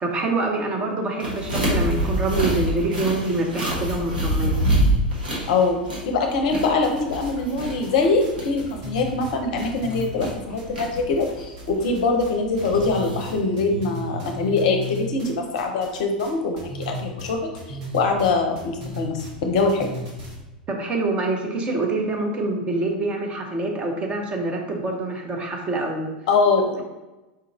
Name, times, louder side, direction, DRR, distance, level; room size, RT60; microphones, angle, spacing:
voice 1, 0.0-4.6 20.7-26.1, right 2 dB, 25° right, 2 dB, 0.6 m, -25 dB
sound 1, 1.2-13.4, right 1 dB, 70° right, 1.2 m, -27 dB
voice 2, 6.1-16.6 16.9-19.9 26.3-26.8, left 3 dB, 50° left, 3 dB, 0.5 m, -23 dB
sound 2, 6.6-7.3 7.6-11.3 11.6-12.3 12.6-20.4, left 1 dB, 50° right, 1.1 m, -35 dB
4.5 x 2.5 x 3.0 m, 1.1 s
figure-of-eight pair, 90°, 5 cm